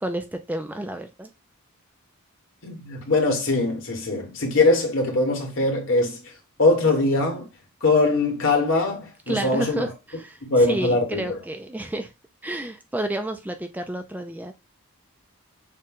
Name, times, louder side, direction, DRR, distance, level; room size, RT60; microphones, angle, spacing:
voice 1, 0.0-1.3 9.3-12.1 12.4-14.5, right 1 dB, 5° right, 0.4 m, -30 dB
voice 2, 2.6-6.3 6.6-7.5 7.8-9.8 10.4-11.3, left 2 dB, 60° left, 1.4 m, -22 dB
6.5 x 2.3 x 3.6 m
head